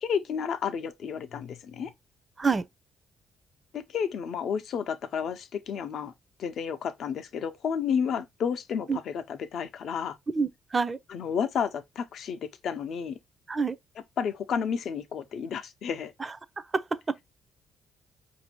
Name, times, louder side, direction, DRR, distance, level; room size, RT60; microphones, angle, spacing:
voice 1, 0.0-1.9 3.7-6.1 6.4-10.2 11.1-13.2 14.2-16.1, left 7 dB, 65° left, 0.6 m, -31 dB
voice 2, 10.3-11.0 13.5-13.8 16.2-16.3 16.7-17.2, right 4 dB, 30° right, 0.5 m, -27 dB
5.0 x 2.6 x 2.9 m
cardioid pair, 90°, 0 cm